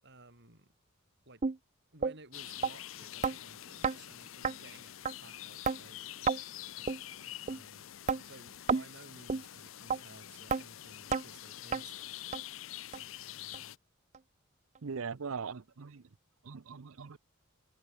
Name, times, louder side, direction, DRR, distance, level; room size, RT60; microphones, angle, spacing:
voice 1, 0.0-0.7 1.3-1.4 1.9-5.0 5.2-7.8 8.2-12.2, right 2 dB, 55° right, 7.0 m, -57 dB
sound 1, 1.4-1.6 2.0-2.2 2.6-2.7 3.2-3.4 3.8-4.0 4.4-4.6 5.1-5.2 5.7-5.8 6.3-6.4 6.9-7.0 7.5-7.6 8.1-8.2 8.7-8.9 9.3-9.4 9.9-10.0 10.5-10.6 11.1-11.2 11.7-11.8 12.3-12.4 12.9-13.0 13.5-13.6 14.1-14.2, right 5 dB, 35° right, 0.5 m, -30 dB
sound 2, 2.3-13.8, left 13 dB, 70° left, 0.6 m, -46 dB
voice 2, 14.8-16.0 16.4-17.2, right 5 dB, 85° right, 0.7 m, -40 dB
head